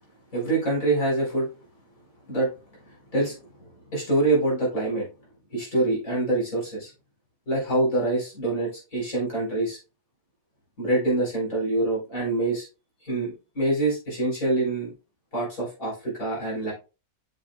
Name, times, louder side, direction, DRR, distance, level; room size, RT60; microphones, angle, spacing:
voice 1, 0.3-1.5 2.3-2.5 3.1-3.4 3.9-5.1 5.5-6.9 7.5-9.8 10.8-12.7 13.0-14.9 15.3-16.7, right 2 dB, 40° left, -3 dB, 4.4 m, -25 dB
7.1 x 7.1 x 2.2 m, 0.31 s
omnidirectional pair, 2.2 m